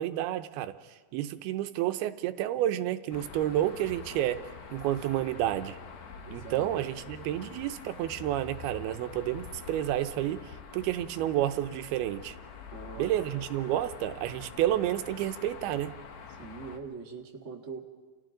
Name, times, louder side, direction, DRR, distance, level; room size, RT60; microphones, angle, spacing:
voice 1, 0.0-5.8 6.3-12.4 13.0-15.9, right 13 dB, 85° right, 2.8 m, -30 dB
sound 1, 3.1-16.8, left 5 dB, 55° left, 2.1 m, -46 dB
voice 2, 6.2-6.7 12.7-13.4 16.4-17.8, right 5 dB, 30° right, 1.2 m, -43 dB
29.5 x 29.5 x 3.9 m
omnidirectional pair, 4.4 m